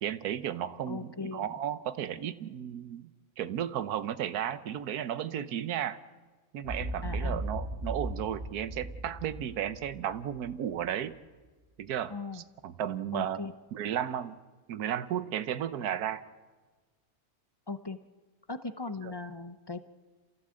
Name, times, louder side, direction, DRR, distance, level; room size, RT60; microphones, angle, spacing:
voice 1, 0.0-3.1 3.4-6.0 6.5-11.1 11.8-13.4 13.7-14.4 14.7-16.2 19.0-19.1, right 10 dB, 80° right, 14 dB, 1.4 m, -34 dB
voice 2, 0.9-1.5 7.0-7.4 12.1-12.4 13.1-13.5 17.7-18.0 18.5-19.8, left 3 dB, 30° left, 10 dB, 0.4 m, -38 dB
Boom, 6.6-10.9, right 1 dB, 45° right, 4.6 m, -37 dB
28.0 x 15.5 x 7.7 m, 1.3 s
omnidirectional pair, 1.6 m